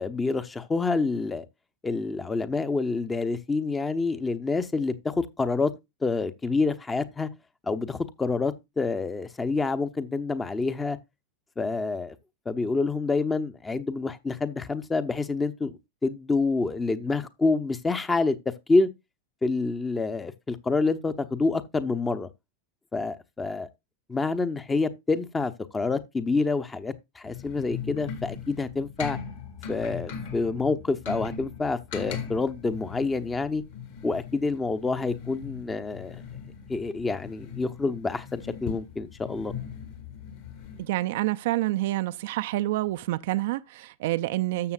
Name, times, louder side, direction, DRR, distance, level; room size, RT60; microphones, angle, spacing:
voice 1, 0.0-1.5 1.8-5.7 6.0-7.3 7.6-11.0 11.6-12.1 12.5-18.4 18.7-18.9 19.4-22.3 22.9-23.7 24.1-29.2 29.7-33.6 34.0-36.2 36.7-39.5, left 3 dB, 15° left, 0.8 m, -27 dB
sound 1, 27.2-40.9, left 7 dB, 50° left, 2.2 m, -39 dB
voice 2, 40.8-44.7, right 17 dB, 50° right, 0.5 m, -28 dB
12.5 x 7.1 x 2.4 m
figure-of-eight pair, 90°, 0 cm